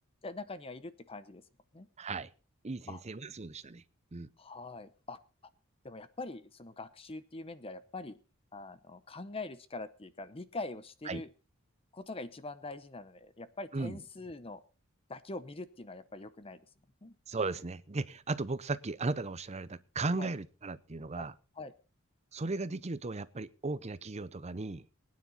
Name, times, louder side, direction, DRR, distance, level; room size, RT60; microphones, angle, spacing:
voice 1, 0.2-1.4 1.7-1.9 2.9-3.0 4.4-5.2 5.8-8.2 8.5-11.3 11.9-14.6 15.1-16.6 17.0-17.1 20.2-20.3 21.2-21.3 21.6-21.7, left 2 dB, 25° left, 0.8 m, -43 dB
voice 2, 2.0-2.3 2.6-3.8 4.1-4.3 11.1-11.2 13.7-14.0 17.3-21.3 22.3-24.9, right 3 dB, 30° right, 0.7 m, -36 dB
20.5 x 9.7 x 4.3 m
head